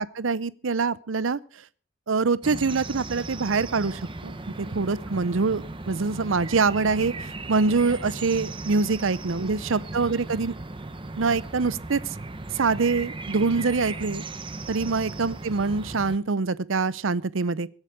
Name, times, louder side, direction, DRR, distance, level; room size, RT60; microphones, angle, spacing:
voice 1, 0.0-1.4 2.1-10.5 11.2-12.0 12.5-14.2 14.7-17.7, right 4 dB, 70° right, 0.7 m, -25 dB
sound 1, 2.4-16.2, right 2 dB, 25° right, 0.9 m, -37 dB
23.5 x 8.2 x 4.8 m
head